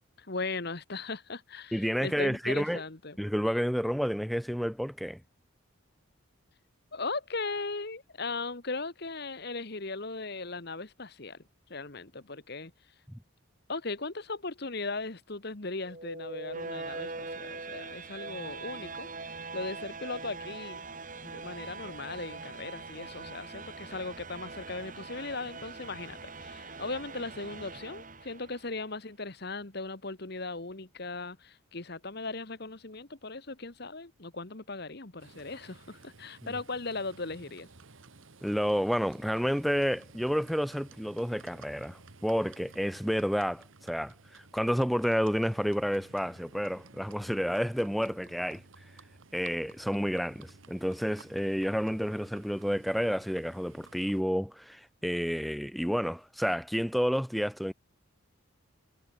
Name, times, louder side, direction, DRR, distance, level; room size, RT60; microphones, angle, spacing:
voice 1, 0.2-3.2 6.9-11.4 11.7-12.7 13.7-20.8 21.2-37.7, left 3 dB, 50° left, 1.5 m, -38 dB
voice 2, 1.7-2.8 3.2-5.2 13.1-13.2 38.4-48.6 49.3-57.7, equal, ahead, 0.7 m, -30 dB
sound 1, 15.8-28.8, right 3 dB, 40° right, 2.9 m, -42 dB
Livestock farm animals working animals, 35.2-54.2, right 3 dB, 70° right, 1.6 m, -55 dB
head